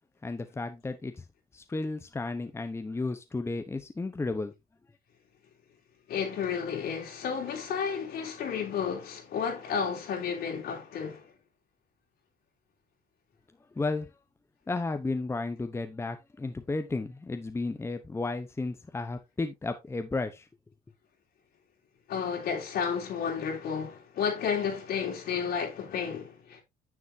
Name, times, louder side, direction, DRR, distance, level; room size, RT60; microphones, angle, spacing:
voice 1, 0.2-1.2 1.5-4.5 13.7-14.1 14.7-20.5, left 3 dB, 15° left, 0.9 m, -33 dB
voice 2, 6.1-11.3 22.1-26.6, left 7 dB, 70° left, 3.6 m, -32 dB
9.7 x 7.2 x 2.7 m
cardioid pair, 110°, 17 cm